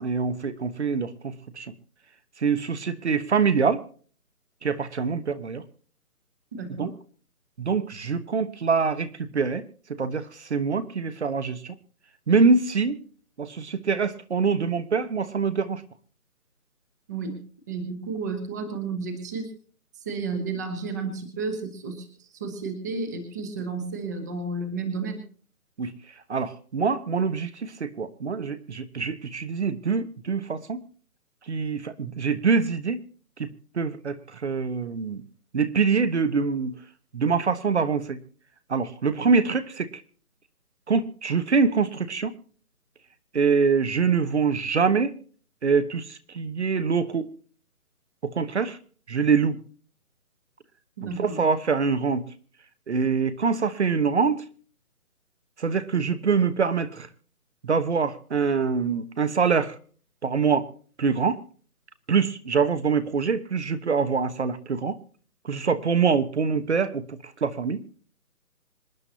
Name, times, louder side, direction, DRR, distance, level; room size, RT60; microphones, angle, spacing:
voice 1, 0.0-1.7 2.4-3.8 4.6-5.6 6.8-6.9 7.6-11.8 12.3-13.0 13.4-15.8 25.8-25.9 26.3-30.8 31.5-33.0 33.4-35.2 35.5-36.8 37.1-38.2 38.7-40.0 40.9-42.3 43.3-45.1 45.6-47.3 48.2-48.8 49.1-49.6 51.2-52.3 52.9-54.4 55.6-57.1 57.6-59.8 60.2-60.7 61.0-61.4 62.1-65.0 65.4-67.8, right 5 dB, 50° right, 12 dB, 1.2 m, -24 dB
voice 2, 6.5-6.9 17.1-17.4 17.7-19.5 20.0-25.2 51.0-51.4, right 4 dB, 10° right, 8 dB, 1.0 m, -32 dB
26.5 x 9.8 x 2.8 m, 0.43 s
figure-of-eight pair, 160°, 45 cm